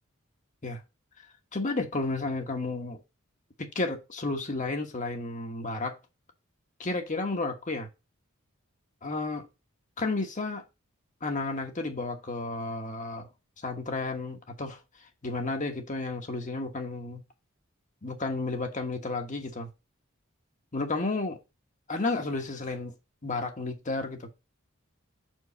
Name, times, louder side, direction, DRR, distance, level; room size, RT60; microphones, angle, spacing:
voice 1, 1.5-3.0 3.6-6.0 6.8-7.9 9.0-9.5 10.0-10.6 11.2-13.3 13.6-14.8 15.2-17.2 18.0-19.7 20.7-21.3 21.9-22.9 23.2-24.3, left 3 dB, 35° left, 1.2 m, -32 dB
6.2 x 4.7 x 4.1 m
head